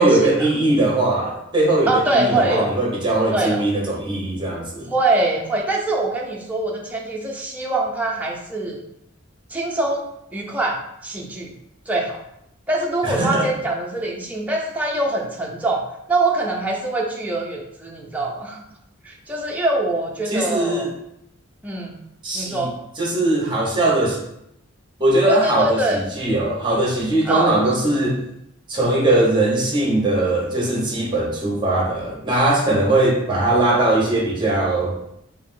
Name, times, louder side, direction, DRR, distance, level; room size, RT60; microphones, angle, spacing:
voice 1, 0.0-4.9 13.0-13.5 20.3-20.9 22.2-22.7 23.0-24.2 25.0-28.2 28.7-35.0, right 2 dB, 25° right, -3 dB, 1.0 m, -20 dB
voice 2, 1.9-2.7 3.3-3.6 4.9-8.8 9.5-10.0 10.3-11.5 11.9-12.2 12.7-18.6 19.0-20.9 21.6-22.0 22.3-22.7 25.3-26.0 27.3-27.5, right 2 dB, 10° right, -2 dB, 0.6 m, -23 dB
4.7 x 2.7 x 2.7 m, 0.78 s
head